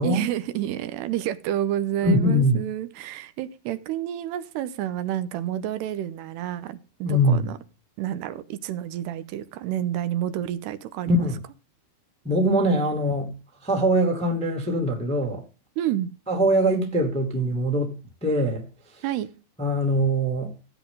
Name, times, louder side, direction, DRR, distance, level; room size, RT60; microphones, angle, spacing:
voice 1, 0.0-7.6 8.0-11.3 15.8-16.1 19.0-19.3, right 12 dB, 85° right, 2.9 m, -29 dB
voice 2, 2.0-2.6 7.0-7.5 11.1-11.4 12.2-13.3 13.6-15.4 16.3-18.6 19.6-20.5, equal, 5° left, 0.7 m, -22 dB
15.5 x 8.1 x 3.8 m
omnidirectional pair, 4.8 m